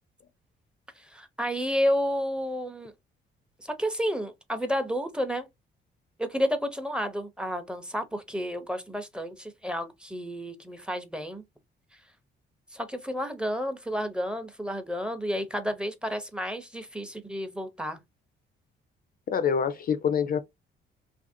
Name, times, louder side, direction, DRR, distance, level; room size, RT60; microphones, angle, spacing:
voice 1, 1.0-2.9 3.6-5.5 6.2-11.4 11.9-12.0 12.7-18.0, equal, 5° right, 0.6 m, -31 dB
voice 2, 19.3-20.4, left 7 dB, 50° left, 0.4 m, -26 dB
2.8 x 2.5 x 2.6 m
cardioid pair, 90°, 20 cm